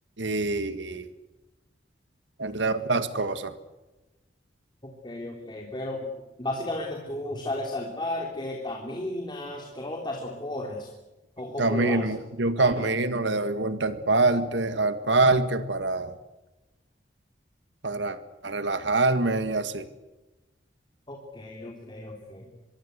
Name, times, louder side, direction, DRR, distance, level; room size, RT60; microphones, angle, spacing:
voice 1, 0.2-1.1 2.4-3.5 11.6-16.2 17.8-18.2 18.4-19.8, right 3 dB, 75° right, 11 dB, 1.9 m, -25 dB
voice 2, 5.0-6.1 6.4-10.9 11.4-12.0 12.6-12.9 21.1-22.5, left 1 dB, 25° left, 1 dB, 3.3 m, -34 dB
25.5 x 23.0 x 8.2 m, 1.0 s
head